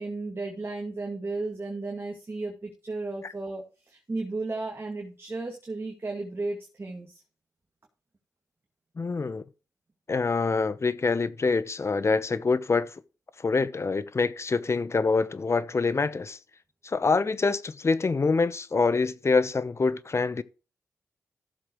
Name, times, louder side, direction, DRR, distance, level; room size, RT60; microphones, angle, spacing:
voice 1, 0.0-7.2, right 3 dB, 35° right, 2.2 m, -34 dB
voice 2, 9.0-9.4 10.1-12.9 13.4-16.4 16.9-20.4, left 4 dB, 45° left, 0.8 m, -25 dB
14.0 x 7.4 x 3.1 m
supercardioid pair, 45°, 7 cm